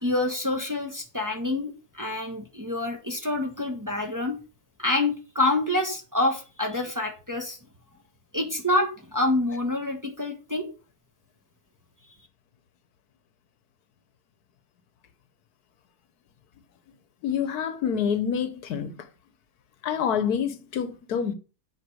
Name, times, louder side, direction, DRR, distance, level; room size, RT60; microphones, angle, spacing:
voice 1, 0.0-4.4 4.8-7.6 8.3-10.7, left 2 dB, 15° right, 1.3 m, -27 dB
voice 2, 17.2-19.1 19.8-21.3, left 7 dB, 75° left, 1.4 m, -27 dB
8.0 x 5.1 x 6.3 m
omnidirectional pair, 1.7 m